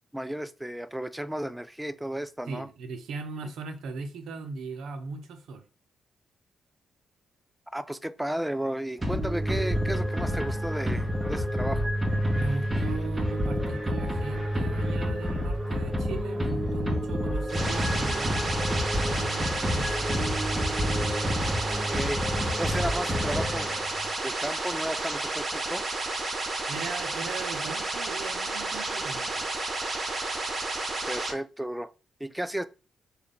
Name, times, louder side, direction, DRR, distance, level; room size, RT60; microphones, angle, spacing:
voice 1, 0.1-2.7 7.7-11.9 21.9-22.2 22.6-23.7 24.2-25.8 31.1-31.9 32.2-32.7, right 1 dB, 5° right, 0.3 m, -33 dB
voice 2, 2.5-5.6 12.3-18.4 19.1-20.2 26.7-29.5, right 4 dB, 75° right, 0.6 m, -38 dB
sound 1, 9.0-24.1, equal, 20° right, 0.9 m, -28 dB
sound 2, 17.5-31.3, right 2 dB, 50° right, 0.8 m, -31 dB
3.4 x 2.3 x 3.9 m
supercardioid pair, 60°, 0 cm